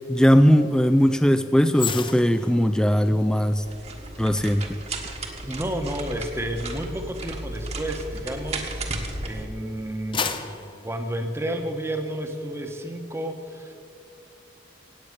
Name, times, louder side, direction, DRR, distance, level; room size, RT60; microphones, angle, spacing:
voice 1, 0.1-3.6 4.2-4.6, equal, 5° left, 10 dB, 0.3 m, -19 dB
sound 1, 1.7-9.1 9.6-12.0 12.3-12.5, left 6 dB, 25° left, 0.7 m, -37 dB
sound 2, 3.6-9.5, right 2 dB, 35° right, 1.4 m, -34 dB
voice 2, 5.4-8.9 9.2-10.5 10.8-13.7, right 1 dB, 15° right, 5 dB, 1.1 m, -31 dB
17.0 x 8.8 x 6.6 m, 2.6 s
head